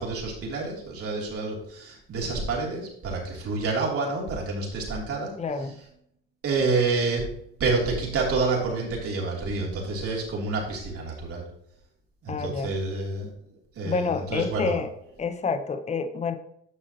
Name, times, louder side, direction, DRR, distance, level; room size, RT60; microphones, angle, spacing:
voice 1, 0.0-5.3 6.4-7.2 7.6-11.4 12.2-13.3 13.7-14.8, right 3 dB, 50° right, -2 dB, 3.0 m, -28 dB
voice 2, 5.4-5.8 12.3-12.7 13.8-14.9 15.2-16.4, left 4 dB, 20° left, 9 dB, 0.8 m, -28 dB
9.9 x 6.3 x 2.9 m, 0.72 s
supercardioid pair, 90°, 30 cm